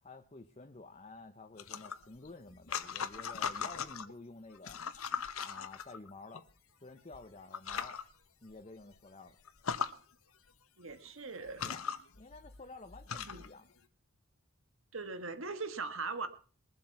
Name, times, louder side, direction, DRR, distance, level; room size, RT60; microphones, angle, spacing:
voice 1, 0.0-4.8 5.4-6.4 6.8-8.0 8.4-9.4 11.6-11.9 12.2-13.7, left 3 dB, 30° left, 6 dB, 0.8 m, -51 dB
sound 1, 1.6-4.1 4.6-6.4 7.1-7.2 7.5-8.0 8.5-8.6 8.9-9.0 9.5-9.9 10.9-11.0 11.5-13.5, left 6 dB, 70° left, 1.1 m, -39 dB
voice 2, 10.8-11.6 13.2-13.4 14.9-16.3, right 4 dB, 65° right, 10 dB, 1.6 m, -40 dB
22.0 x 7.6 x 5.8 m, 0.40 s
head